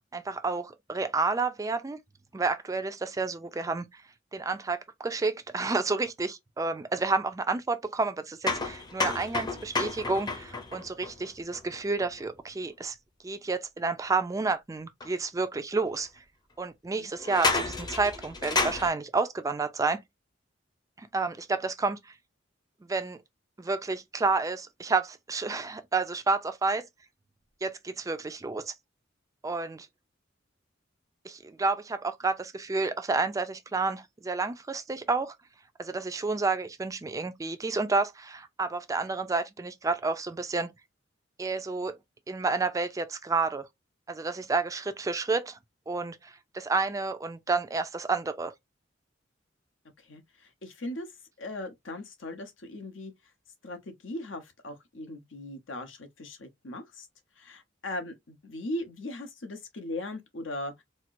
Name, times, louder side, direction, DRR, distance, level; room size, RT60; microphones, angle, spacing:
voice 1, 0.1-2.0 2.3-3.8 4.3-13.0 13.2-16.1 16.6-20.0 21.0-22.0 22.9-23.2 23.6-26.9 27.6-28.7 29.4-29.9 31.2-35.3 35.8-40.7 41.4-42.0 42.3-43.7 44.1-45.6 45.9-48.5, right 3 dB, 15° right, 0.4 m, -30 dB
sound 1, 8.4-12.2 15.0-15.1 15.9-16.0 17.2-18.9, left 3 dB, 20° left, 0.7 m, -31 dB
voice 2, 50.1-51.1 51.4-53.1 53.6-57.1 57.4-60.8, left 1 dB, 80° left, 0.9 m, -39 dB
4.2 x 2.0 x 2.5 m
head